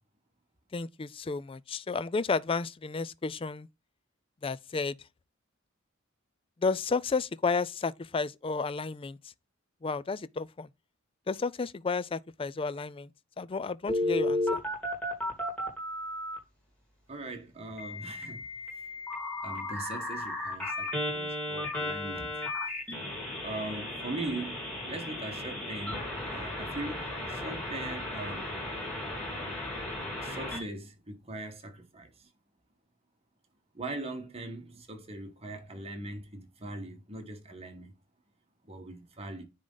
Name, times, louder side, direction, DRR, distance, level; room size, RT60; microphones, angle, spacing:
voice 1, 0.7-3.7 4.4-5.0 6.6-9.2 9.8-10.7 11.3-13.1 13.4-14.6, left 4 dB, 25° left, 0.4 m, -32 dB
Telephone, 13.9-16.4 17.8-30.6, left 1 dB, 5° left, 3.8 m, -34 dB
voice 2, 17.1-18.5 19.4-22.4 22.6-22.8 23.4-28.5 30.2-32.3 33.7-37.9 38.7-39.4, right 2 dB, 30° right, 1.7 m, -40 dB
9.8 x 3.7 x 3.9 m
head